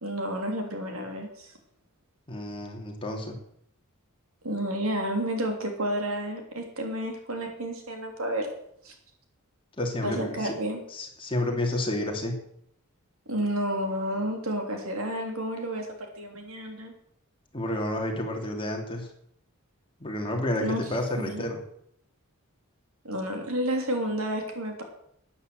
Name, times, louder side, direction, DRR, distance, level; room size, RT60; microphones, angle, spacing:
voice 1, 0.0-1.5 4.4-8.5 8.8-8.9 10.0-10.8 13.3-16.9 20.6-20.8 21.2-21.4 23.0-24.8, right 1 dB, 70° right, 3 dB, 3.2 m, -31 dB
voice 2, 2.3-3.4 9.8-10.5 10.9-12.4 17.5-19.1 20.0-21.6, left 1 dB, 25° left, 1 dB, 2.8 m, -30 dB
12.0 x 9.8 x 7.9 m, 0.71 s
head